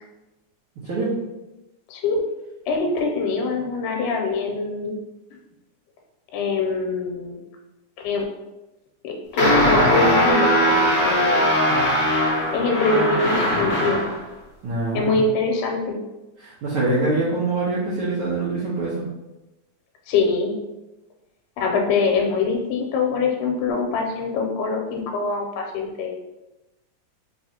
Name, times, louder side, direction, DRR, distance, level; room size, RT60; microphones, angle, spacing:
voice 1, 0.8-1.1 14.6-15.2 16.4-19.0, right 2 dB, 85° right, -8 dB, 1.2 m, -24 dB
voice 2, 2.7-5.0 6.3-7.4 8.0-8.3 9.0-11.5 12.5-14.0 14.9-16.0 20.1-20.6 21.6-26.2, left 4 dB, 80° left, 1 dB, 2.2 m, -24 dB
sound 1, 9.4-14.2, equal, 65° left, 1.1 m, -19 dB
4.7 x 3.1 x 2.8 m, 1.0 s
omnidirectional pair, 3.7 m